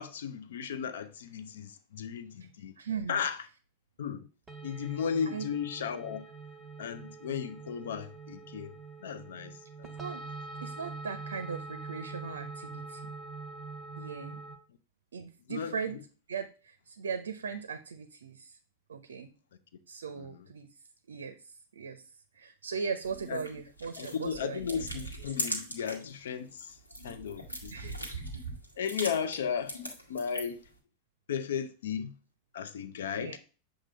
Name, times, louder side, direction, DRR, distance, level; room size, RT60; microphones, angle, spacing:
voice 1, 0.0-2.7 3.1-3.4 4.0-4.3 4.6-6.2 6.8-8.8 9.0-9.5 15.5-15.7 20.2-20.3 23.3-23.4 24.0-26.7 27.0-28.0 28.8-29.8 30.1-30.6 31.3-32.1 32.5-33.4, left 7 dB, 60° left, 0.6 m, -35 dB
voice 2, 2.8-3.2 4.7-5.0 5.3-5.5 10.0-10.2 10.6-13.1 14.0-14.4 15.1-16.0 16.3-18.6 18.9-19.3 19.9-20.7 21.1-22.1 22.3-24.6 27.7-28.0 28.3-28.4 33.1-33.4, right 6 dB, 70° right, 0.5 m, -39 dB
sound 1, 4.5-14.6, right 3 dB, 15° right, 0.9 m, -44 dB
sound 2, 23.0-26.1 26.5-30.7, equal, 85° left, 1.3 m, -40 dB
7.4 x 2.6 x 5.0 m
figure-of-eight pair, 90°, 0 cm